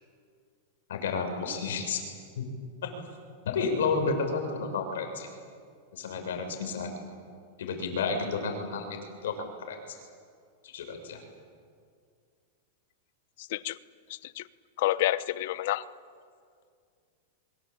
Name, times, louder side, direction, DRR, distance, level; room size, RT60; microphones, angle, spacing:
voice 1, 0.9-2.0 2.4-2.5 2.8-2.9 3.4-5.3 5.9-6.9 7.6-10.0 10.6-11.2, left 4 dB, 85° left, 5 dB, 6.4 m, -31 dB
voice 2, 13.4-13.8 14.1-14.4 14.8-15.8, left 15 dB, 60° left, 17 dB, 0.9 m, -29 dB
26.0 x 24.5 x 8.8 m, 2.2 s
supercardioid pair, 155°, 0 cm